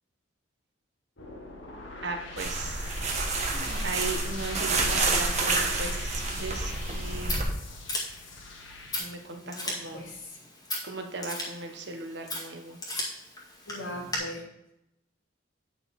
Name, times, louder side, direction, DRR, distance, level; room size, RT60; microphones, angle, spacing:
sound 1, 1.2-9.0, left 3 dB, 70° left, 1.6 m, -42 dB
voice 1, 2.0-2.9 3.8-7.5 9.0-10.0 10.8-12.8, right 2 dB, 55° right, 4 dB, 1.2 m, -37 dB
sound 2, 2.4-7.4, right 3 dB, 35° right, 1.3 m, -29 dB
voice 2, 3.5-3.9 9.3-10.4 13.6-14.4, left 1 dB, 85° left, -3 dB, 3.1 m, -41 dB
Scissors, 6.7-14.2, left 1 dB, 20° left, 1.9 m, -38 dB
9.2 x 6.0 x 4.2 m, 0.84 s
head